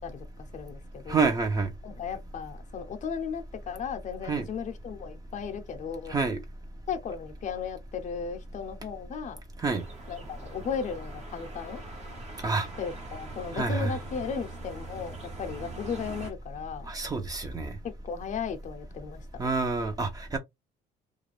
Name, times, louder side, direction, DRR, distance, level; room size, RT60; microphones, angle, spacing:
voice 1, 0.0-1.3 1.8-6.2 6.9-9.4 10.1-11.8 12.8-16.9 17.8-19.4, left 6 dB, 45° left, 0.6 m, -36 dB
voice 2, 1.1-1.7 4.3-4.5 6.1-6.4 9.6-9.8 12.4-12.7 13.5-13.9 16.9-17.8 19.4-20.4, right 4 dB, 20° right, 0.7 m, -27 dB
sound 1, 9.6-16.3, right 3 dB, 40° right, 0.9 m, -43 dB
2.5 x 2.2 x 3.1 m
cardioid pair, 110°, 17 cm